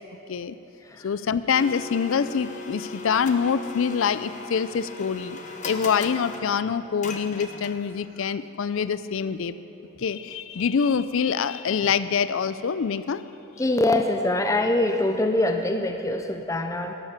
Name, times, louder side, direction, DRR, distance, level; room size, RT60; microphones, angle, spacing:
voice 1, 1.0-5.4 5.6-9.5 10.0-13.2, left 6 dB, 65° left, 14 dB, 0.4 m, -25 dB
Domestic sounds home sounds, 1.5-8.0, left 4 dB, 35° left, 0.8 m, -39 dB
voice 2, 13.6-16.9, left 1 dB, 15° left, 5 dB, 0.5 m, -24 dB
13.0 x 11.0 x 6.6 m, 3.0 s
head